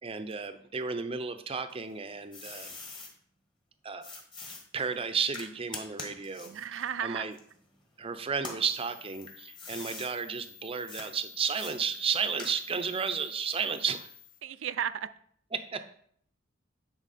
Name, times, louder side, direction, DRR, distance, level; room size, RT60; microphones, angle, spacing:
voice 1, 0.0-2.8 3.8-4.1 4.7-7.3 8.0-14.1 15.5-15.8, right 6 dB, 30° right, 10 dB, 0.5 m, -33 dB
sound 1, 1.7-3.1 4.0-7.9 8.3-10.1 10.9-11.1 11.6-12.9, left 3 dB, 25° left, 1.5 m, -44 dB
voice 2, 6.5-7.3 14.4-15.1, right 8 dB, 85° right, 15 dB, 0.4 m, -34 dB
sound 2, 8.6-14.4, left 10 dB, 45° left, 0.8 m, -53 dB
9.8 x 4.2 x 4.2 m, 0.62 s
head